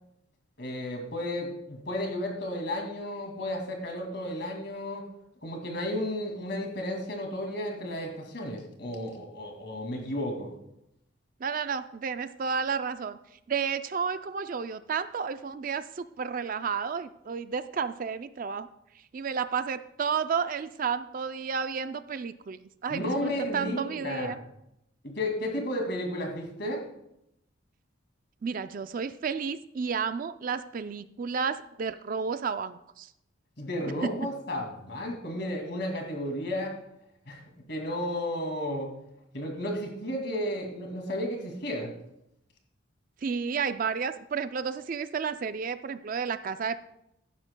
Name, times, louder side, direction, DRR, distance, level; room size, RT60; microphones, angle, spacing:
voice 1, 0.6-5.0 5.4-10.5 22.9-24.3 25.0-26.8 33.6-36.8 37.3-37.4 37.7-38.9 39.3-41.9, left 1 dB, 55° left, 2 dB, 2.3 m, -33 dB
voice 2, 11.4-13.2 13.5-18.7 19.1-24.4 28.4-33.1 43.2-46.8, right 6 dB, 45° right, 12 dB, 0.4 m, -32 dB
15.0 x 11.0 x 2.2 m, 0.82 s
head